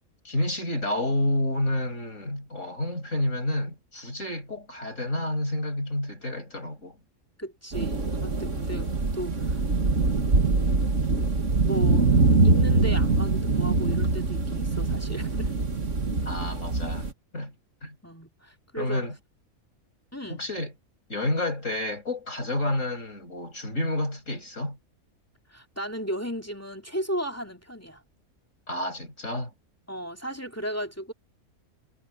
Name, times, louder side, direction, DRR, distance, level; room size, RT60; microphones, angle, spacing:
voice 1, 0.2-7.0 16.3-17.5 17.8-18.0 18.8-19.2 20.3-20.7 21.1-24.8 28.7-29.5, left 1 dB, 60° left, 7.7 m, -29 dB
voice 2, 7.4-9.6 11.2-11.3 11.6-12.1 12.4-15.6 18.0-19.0 20.1-20.5 25.5-28.0 29.9-31.1, equal, 10° left, 2.4 m, -35 dB
sound 1, 7.7-17.1, right 3 dB, 60° right, 2.5 m, -23 dB
omnidirectional pair, 1.5 m